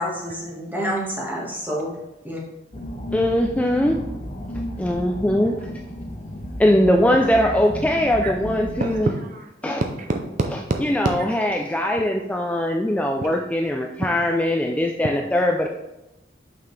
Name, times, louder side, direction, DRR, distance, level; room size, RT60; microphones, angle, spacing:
voice 1, 0.0-1.9 2.2-2.4, equal, 10° right, -4 dB, 1.5 m, -28 dB
sound 1, 2.7-8.9, equal, 45° left, 1.2 m, -33 dB
voice 2, 3.1-4.0 4.8-5.5 6.6-9.1 9.6-9.8 10.8-15.7, left 1 dB, 10° left, 2 dB, 0.3 m, -21 dB
voice 3, 8.8-11.3 13.2-13.4 14.0-14.1, right 2 dB, 45° right, 4 dB, 0.5 m, -27 dB
6.7 x 5.7 x 3.2 m, 0.96 s
head